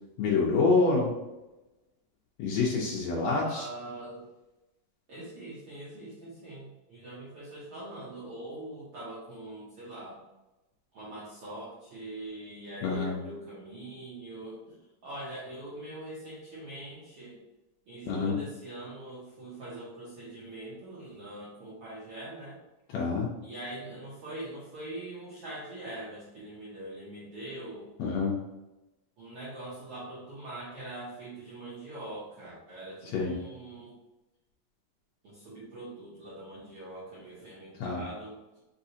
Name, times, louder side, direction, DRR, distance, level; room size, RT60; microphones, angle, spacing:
voice 1, 0.2-1.1 2.4-3.7 12.8-13.1 18.1-18.4 22.9-23.3 28.0-28.3 33.1-33.3 37.8-38.0, left 4 dB, 85° left, -3 dB, 1.5 m, -26 dB
voice 2, 3.2-4.2 5.1-10.2 10.9-14.8 15.0-17.4 17.9-22.6 23.4-27.9 29.2-33.9 35.2-38.3, right 1 dB, 70° right, -8 dB, 1.4 m, -43 dB
5.2 x 3.3 x 2.7 m, 1.0 s
omnidirectional pair, 4.0 m